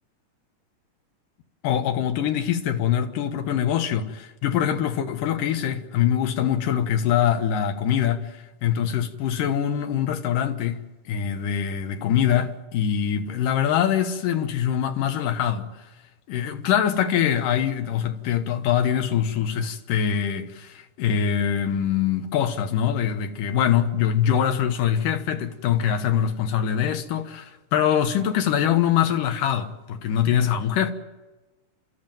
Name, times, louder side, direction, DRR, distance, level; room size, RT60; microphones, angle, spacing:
voice 1, 1.6-15.7 16.3-30.9, left 9 dB, 90° left, 2.9 m, -23 dB
30.0 x 14.0 x 9.1 m
omnidirectional pair, 3.7 m